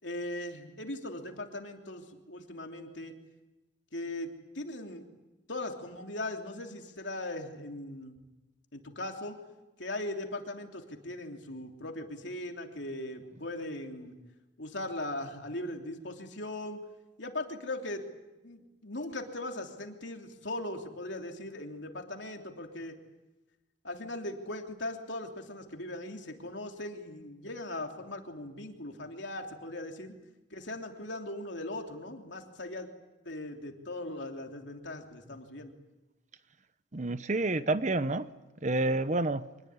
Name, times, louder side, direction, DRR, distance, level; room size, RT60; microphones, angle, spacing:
voice 1, 0.0-3.1 3.9-5.0 5.5-8.2 8.7-9.3 9.8-14.1 14.6-16.8 17.2-18.0 18.4-22.9 23.8-30.1 30.5-32.9 33.2-35.7, left 1 dB, 65° left, 3 dB, 3.1 m, -39 dB
voice 2, 36.9-38.3 38.6-39.4, right 2 dB, 35° right, 13 dB, 0.8 m, -29 dB
25.0 x 20.0 x 9.6 m, 1.1 s
head